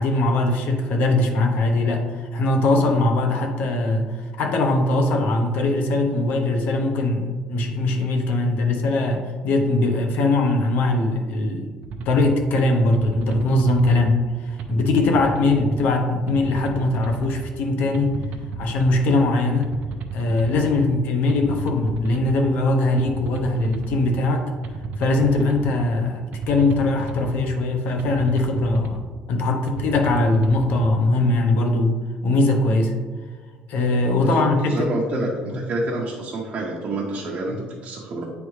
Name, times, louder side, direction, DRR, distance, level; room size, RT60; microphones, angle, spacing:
voice 1, 0.0-11.7 12.1-18.2 18.6-19.7 20.1-24.5 25.0-29.0 29.3-32.0 32.2-32.9 33.7-35.6 37.5-37.6, left 2 dB, 75° left, 4 dB, 0.8 m, -21 dB
sound 1, 11.8-12.3 12.9-14.0 14.6-15.6 16.3-17.3 17.9-19.0 19.6-20.7 21.3-22.3 23.0-24.0 24.6-25.7 26.3-27.4 28.0-29.0 29.7-30.7, right 4 dB, 60° right, 0.6 m, -33 dB
voice 2, 34.2-38.2, right 2 dB, 40° right, -3 dB, 0.9 m, -28 dB
9.4 x 3.4 x 3.2 m, 1.5 s
cardioid pair, 130°, 3 cm